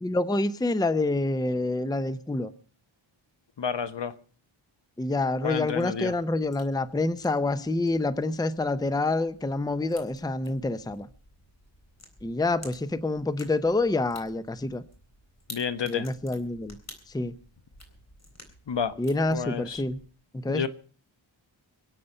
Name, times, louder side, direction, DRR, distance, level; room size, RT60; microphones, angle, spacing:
voice 1, 0.0-2.5 5.0-11.1 12.2-14.8 15.9-16.8 17.1-17.3 19.0-20.0 20.3-20.7, left 2 dB, 10° left, 0.7 m, -27 dB
voice 2, 3.6-4.1 5.4-6.1 15.5-16.1 18.7-18.9 19.3-19.8 20.5-20.7, left 7 dB, 60° left, 1.2 m, -30 dB
sound 1, 5.4-20.1, left 1 dB, 30° left, 3.8 m, -52 dB
24.0 x 8.4 x 5.5 m
wide cardioid pair, 85°, 48 cm